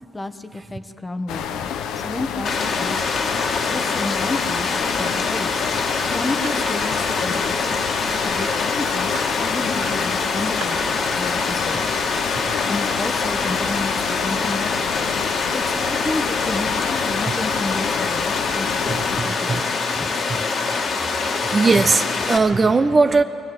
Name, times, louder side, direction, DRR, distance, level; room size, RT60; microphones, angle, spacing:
voice 1, 0.1-1.7 2.0-3.0 3.6-5.5 6.1-7.9 8.2-10.8 11.2-12.0 12.7-14.9 15.5-19.0 19.2-19.7 19.9-20.1, left 2 dB, 20° left, 9 dB, 1.3 m, -31 dB
sound 1, 1.3-19.2, left 8 dB, 90° left, 1.0 m, -29 dB
sound 2, 1.7-1.8 2.3-2.6 3.0-3.4 5.2-6.9 7.3-8.7 8.9-10.8 11.1-13.0, right 6 dB, 80° right, 2.7 m, -41 dB
Water, 2.4-22.4, left 4 dB, 60° left, 2.1 m, -24 dB
voice 2, 18.9-19.6 20.3-20.4 21.4-23.2, right 4 dB, 30° right, 9 dB, 0.8 m, -19 dB
24.0 x 17.5 x 8.0 m, 2.5 s
cardioid pair, 90°, 0 cm